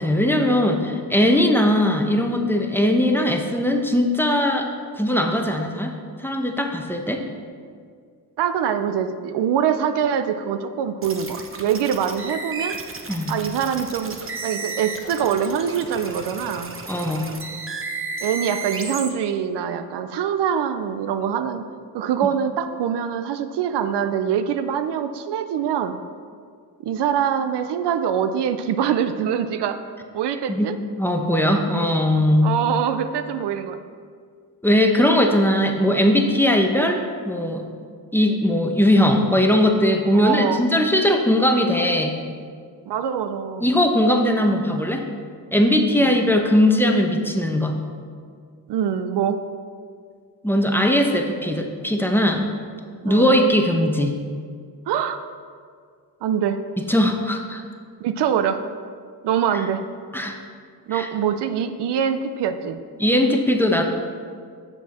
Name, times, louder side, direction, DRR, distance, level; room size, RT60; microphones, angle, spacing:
voice 1, 0.0-4.7 4.9-5.9 6.2-7.2 13.1-13.3 16.9-17.3 30.5-32.6 34.6-37.6 38.1-42.1 43.6-45.0 45.5-47.7 50.4-52.5 53.0-54.2 56.9-57.6 60.1-60.4 60.9-61.1 63.0-63.8, left 1 dB, 5° left, 3 dB, 0.8 m, -19 dB
voice 2, 8.4-12.8 13.3-16.8 18.2-21.7 21.9-26.0 26.8-29.8 30.1-30.8 32.4-33.8 40.1-40.6 42.9-43.7 45.9-46.1 48.7-49.5 53.0-53.3 54.9-55.2 56.2-56.6 58.0-58.6 59.2-59.8 60.9-62.8, right 8 dB, 85° right, 10 dB, 0.5 m, -24 dB
sound 1, 11.0-19.1, right 4 dB, 30° right, 0.8 m, -33 dB
7.7 x 6.0 x 4.2 m, 2.1 s
cardioid pair, 65°, 40 cm